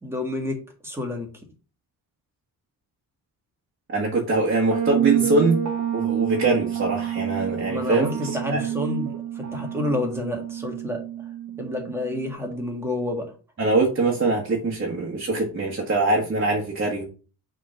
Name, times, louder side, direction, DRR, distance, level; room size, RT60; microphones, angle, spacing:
voice 1, 0.0-1.3 7.7-11.0 11.6-13.3, left 2 dB, 5° right, 1 dB, 1.7 m, -29 dB
voice 2, 3.9-5.6 5.9-8.6 13.6-17.0, right 3 dB, 35° right, -2 dB, 1.5 m, -23 dB
sound 1, 4.7-12.3, right 10 dB, 50° right, 1.2 m, -28 dB
6.2 x 3.8 x 5.8 m, 0.36 s
wide cardioid pair, 160°, 36 cm